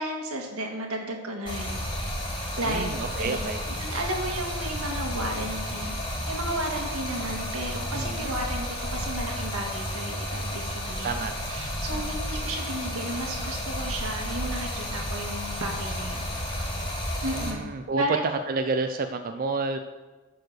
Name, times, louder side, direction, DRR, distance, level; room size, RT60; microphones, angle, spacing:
voice 1, 0.0-2.1 2.6-2.9 3.2-3.4 3.7-5.9 6.3-11.1 11.5-16.2 17.2-17.6 18.0-18.2, right 1 dB, 80° right, 1 dB, 1.8 m, -33 dB
Stream, 1.4-17.5, equal, 25° left, 2.7 m, -32 dB
voice 2, 2.6-3.6 7.9-8.3 11.0-11.3 11.9-12.0 17.2-18.2 18.5-19.8, right 4 dB, 40° right, 7 dB, 0.4 m, -30 dB
11.0 x 4.8 x 6.3 m, 1.3 s
head